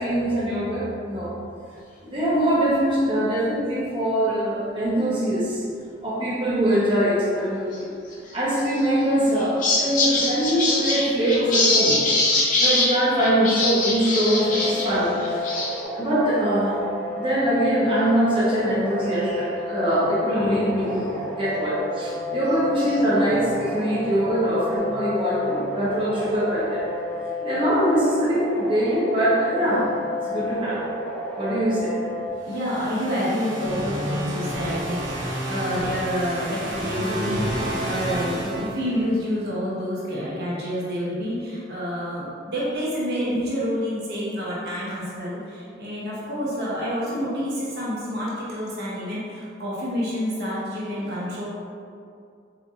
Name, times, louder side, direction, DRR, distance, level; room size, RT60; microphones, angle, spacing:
voice 1, 0.0-1.3 2.0-5.7 6.0-7.9 8.3-12.0 12.6-15.4 15.9-16.8 17.2-26.9 27.4-29.9 30.3-30.8 31.4-32.0, right 1 dB, 30° right, -10 dB, 0.8 m, -23 dB
sound 1, 8.7-9.0 9.4-14.9 15.2-15.8, left 2 dB, 45° left, 0.6 m, -23 dB
sound 2, 14.3-32.3, left 2 dB, 5° left, 0.4 m, -31 dB
sound 3, 32.4-39.3, right 1 dB, 90° right, 0.9 m, -30 dB
voice 2, 32.5-51.4, equal, 60° right, -7 dB, 0.8 m, -28 dB
3.9 x 3.2 x 2.4 m, 2.4 s
head